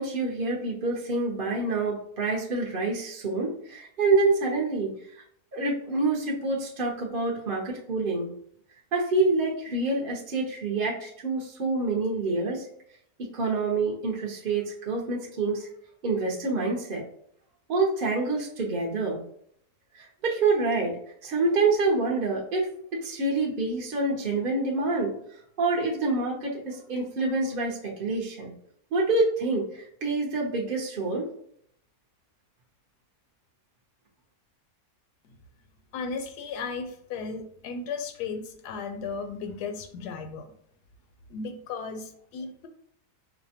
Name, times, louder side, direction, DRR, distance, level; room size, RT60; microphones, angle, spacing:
voice 1, 0.0-4.9 5.5-8.3 8.9-12.6 13.3-15.7 16.0-17.0 17.7-19.2 20.0-20.9 21.2-25.1 25.6-28.5 28.9-31.3, right 3 dB, 50° right, -3 dB, 0.7 m, -27 dB
voice 2, 35.9-40.4 41.3-42.7, left 5 dB, 80° left, 6 dB, 1.2 m, -35 dB
4.9 x 2.1 x 2.8 m, 0.67 s
omnidirectional pair, 1.7 m